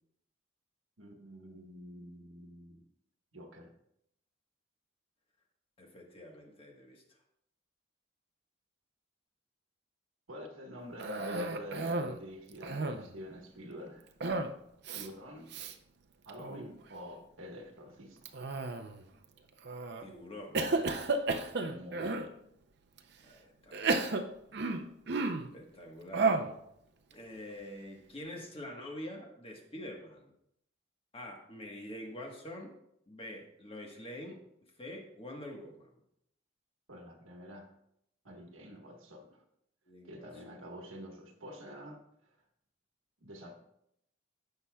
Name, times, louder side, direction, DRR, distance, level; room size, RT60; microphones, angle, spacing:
voice 1, 1.0-2.8 3.3-3.7 10.3-14.1 14.9-15.5 16.2-18.3 21.6-22.1 36.9-37.7 38.2-39.4 40.0-42.0 43.2-43.5, equal, 85° right, 2 dB, 1.4 m, -47 dB
voice 2, 5.8-7.0 20.0-20.6 23.2-24.2 25.5-26.4 27.1-30.3 31.1-32.7 33.1-34.4 34.8-36.0 39.9-40.3, left 1 dB, 30° left, 1 dB, 1.3 m, -46 dB
Cough, 11.0-12.2 12.5-13.2 14.2-14.6 14.8-15.1 15.5-15.7 16.3-16.7 18.3-19.0 19.6-20.0 20.5-22.3 23.0-23.1 23.7-25.5 26.1-26.6, right 3 dB, 55° right, 0.5 m, -33 dB
16.0 x 5.5 x 2.3 m, 0.77 s
head